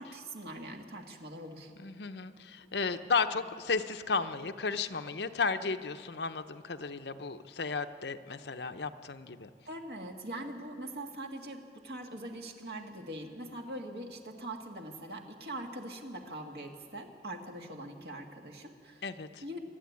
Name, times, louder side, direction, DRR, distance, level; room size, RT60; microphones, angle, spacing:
voice 1, 0.0-1.7 9.7-19.1 19.4-19.6, right 1 dB, 65° right, 2 dB, 2.1 m, -42 dB
voice 2, 1.8-9.5 19.0-19.4, left 4 dB, 75° left, 9 dB, 0.8 m, -34 dB
24.0 x 12.5 x 9.5 m, 2.8 s
head